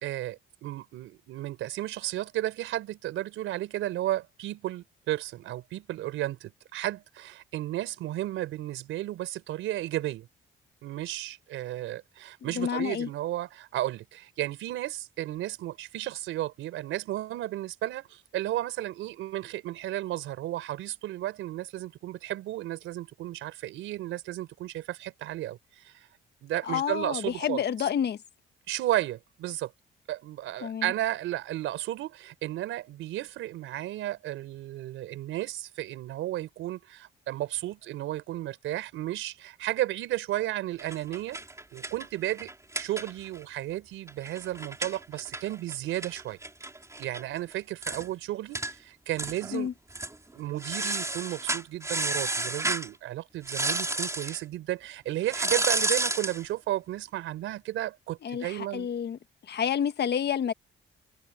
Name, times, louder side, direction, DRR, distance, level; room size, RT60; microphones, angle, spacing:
voice 1, 0.0-10.3 10.8-26.1 26.4-27.6 28.7-29.7 30.1-41.4 41.7-42.5 42.8-46.4 47.0-49.7 50.3-58.9, right 14 dB, 90° right, 4.7 m, -33 dB
voice 2, 12.5-13.1 26.6-28.2 30.6-30.9 49.5-49.7 58.2-59.2 59.5-60.5, left 8 dB, 55° left, 1.5 m, -29 dB
sound 1, 40.8-43.4 43.7-43.8 44.1-47.2 47.5-47.6 47.8-48.1 48.5-48.7 49.2-49.6 49.9-50.1 50.6-52.9 53.4-54.4 55.3-56.4, right 2 dB, 15° right, 3.7 m, -31 dB
cardioid pair, 90°, 20 cm